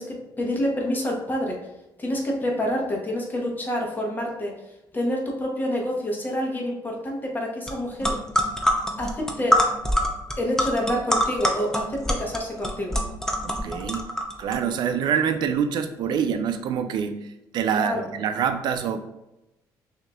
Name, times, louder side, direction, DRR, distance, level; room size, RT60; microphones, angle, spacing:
voice 1, 0.0-1.7 2.0-4.6 4.9-8.2 9.0-9.6 10.4-13.0 17.7-18.0, left 1 dB, 25° left, -1 dB, 1.2 m, -27 dB
sound 1, 7.7-7.8 8.0-14.6, equal, 5° left, 0.7 m, -24 dB
voice 2, 13.4-14.1 14.4-19.0, right 7 dB, 65° right, 9 dB, 0.5 m, -26 dB
6.3 x 2.8 x 2.4 m, 0.93 s
cardioid pair, 100°, 8 cm